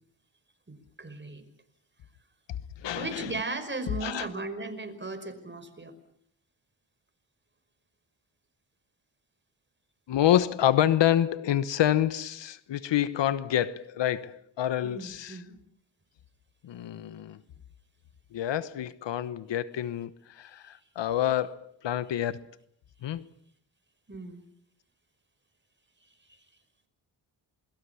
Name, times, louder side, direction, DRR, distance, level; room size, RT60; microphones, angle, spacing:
voice 1, 0.7-1.4 2.9-5.9 14.8-15.5 24.1-24.5 26.3-26.4, right 3 dB, 25° right, 5.5 m, -37 dB
voice 2, 2.8-3.3 4.0-4.3 10.1-15.4 16.6-17.4 18.3-22.4 23.0-23.3, left 11 dB, 85° left, 1.1 m, -27 dB
28.0 x 21.0 x 7.1 m
cardioid pair, 70°, 43 cm